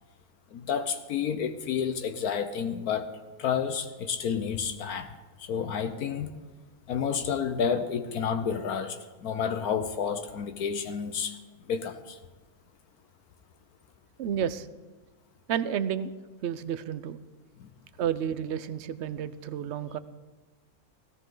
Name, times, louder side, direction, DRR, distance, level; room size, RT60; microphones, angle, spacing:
voice 1, 0.5-3.1 3.4-6.3 6.9-11.4 11.7-12.2 17.6-17.7, left 7 dB, 75° left, 8 dB, 1.3 m, -30 dB
voice 2, 14.2-14.7 15.5-16.1 16.4-17.2 18.0-20.0, right 9 dB, 60° right, 14 dB, 0.8 m, -31 dB
17.0 x 15.0 x 3.9 m, 1.2 s
omnidirectional pair, 1.6 m